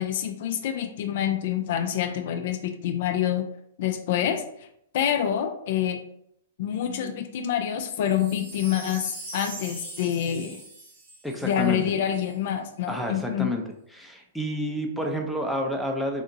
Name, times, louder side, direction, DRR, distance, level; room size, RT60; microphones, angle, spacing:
voice 1, 0.0-3.5 3.8-4.7 4.9-6.0 6.6-10.6 11.4-13.5, left 10 dB, 55° left, 7 dB, 0.3 m, -27 dB
Wind chime, 8.0-12.3 12.9-13.0, right 2 dB, 40° right, 1.1 m, -42 dB
voice 2, 11.2-11.8 12.9-13.6 13.9-16.2, equal, ahead, 1 dB, 0.5 m, -29 dB
3.4 x 2.7 x 2.7 m, 0.73 s
hypercardioid pair, 110°, 0 cm